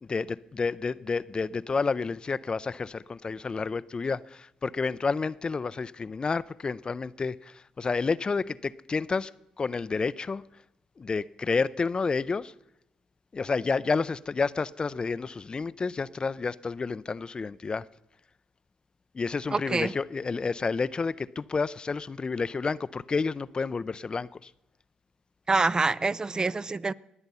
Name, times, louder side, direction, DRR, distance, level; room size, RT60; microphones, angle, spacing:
voice 1, 0.0-9.3 9.6-10.4 11.0-12.5 13.3-17.9 19.1-24.5, left 4 dB, 35° left, 0.4 m, -30 dB
voice 2, 19.5-19.9 25.5-26.9, right 3 dB, 30° right, 0.4 m, -26 dB
20.5 x 8.0 x 5.5 m
supercardioid pair, 60°, 3 cm